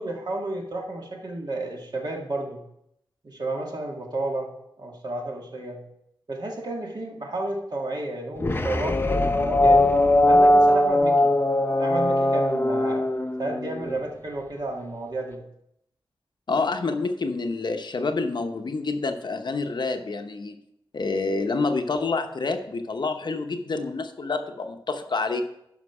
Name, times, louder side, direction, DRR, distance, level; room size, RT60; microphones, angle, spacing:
voice 1, 0.0-2.6 3.2-4.5 4.8-5.8 6.3-9.9 10.3-11.3 11.8-13.1 13.4-15.4, right 2 dB, 50° right, 0 dB, 1.8 m, -31 dB
sound 1, 8.4-13.9, left 1 dB, 25° left, 0.7 m, -20 dB
voice 2, 16.5-20.6 20.9-25.4, left 3 dB, 55° left, 6 dB, 0.8 m, -28 dB
11.5 x 5.3 x 4.8 m, 0.78 s
wide cardioid pair, 95°, 9 cm